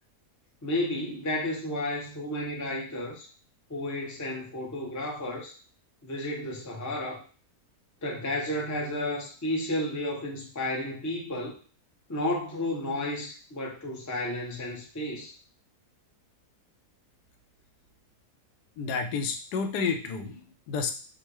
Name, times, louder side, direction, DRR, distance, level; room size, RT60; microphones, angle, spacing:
voice 1, 0.6-3.3 3.7-5.5 6.0-7.2 8.0-11.5 12.1-15.3, left 1 dB, 25° left, -1 dB, 0.4 m, -32 dB
voice 2, 18.8-20.9, left 5 dB, 85° left, 6 dB, 1.2 m, -30 dB
5.3 x 2.2 x 3.1 m, 0.39 s
omnidirectional pair, 1.7 m